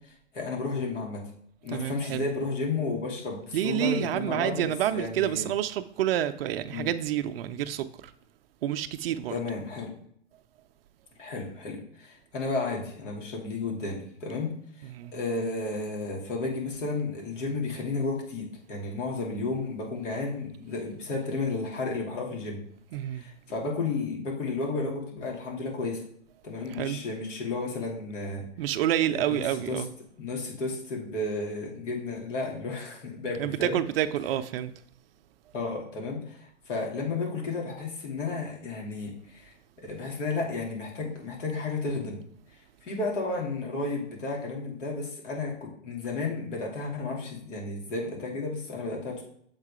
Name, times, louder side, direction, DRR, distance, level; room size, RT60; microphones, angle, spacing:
voice 1, 0.3-1.2 1.6-5.5 6.7-6.9 9.3-10.0 11.2-22.6 23.1-26.0 26.4-28.4 29.1-29.8 30.2-33.8 35.5-42.2 42.8-49.2, left 3 dB, 80° left, 2.9 m, -33 dB
voice 2, 1.7-2.3 3.5-8.1 8.6-9.3 14.8-15.1 17.8-17.9 22.9-23.2 26.7-27.0 28.6-29.9 33.4-34.7, right 11 dB, 50° right, 0.6 m, -28 dB
7.4 x 3.9 x 5.0 m
hypercardioid pair, 145°, 37 cm